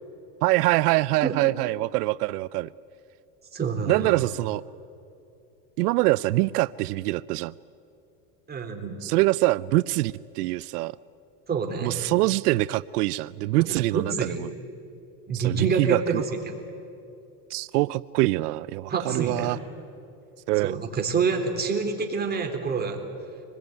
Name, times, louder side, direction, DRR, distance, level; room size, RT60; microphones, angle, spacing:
voice 1, 0.4-2.7 3.9-4.6 5.8-7.5 9.0-11.0 11.8-14.5 15.3-16.2 17.5-19.6 20.5-20.7, right 19 dB, 85° right, 18 dB, 0.6 m, -24 dB
voice 2, 3.5-4.2 8.5-9.0 11.5-12.1 13.6-14.3 15.3-16.2 18.9-19.5 20.6-23.0, right 5 dB, 20° right, 2 dB, 3.7 m, -27 dB
25.0 x 20.5 x 9.5 m, 2.7 s
supercardioid pair, 130°, 45 cm